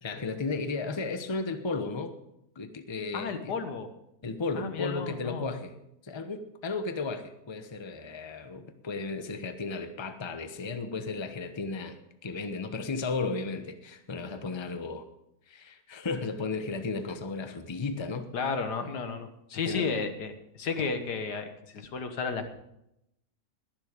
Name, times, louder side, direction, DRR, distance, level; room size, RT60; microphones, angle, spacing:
voice 1, 0.0-2.1 2.5-3.5 4.2-5.7 6.0-15.1 15.5-18.3 19.7-19.9, left 3 dB, 20° left, 9 dB, 0.9 m, -34 dB
voice 2, 3.1-3.9 4.6-5.5 18.3-22.5, left 5 dB, 80° left, 8 dB, 1.9 m, -33 dB
21.0 x 7.5 x 5.2 m, 0.82 s
omnidirectional pair, 1.8 m